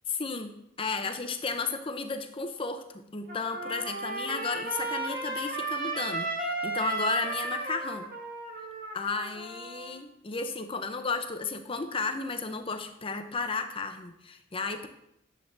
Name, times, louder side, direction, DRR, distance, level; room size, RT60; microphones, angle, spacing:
voice 1, 0.1-6.3 6.6-8.1 8.9-14.9, left 4 dB, 25° left, 7 dB, 0.7 m, -33 dB
Trumpet, 3.3-9.9, right 2 dB, 45° right, 1.5 m, -34 dB
9.5 x 7.2 x 3.3 m, 0.79 s
head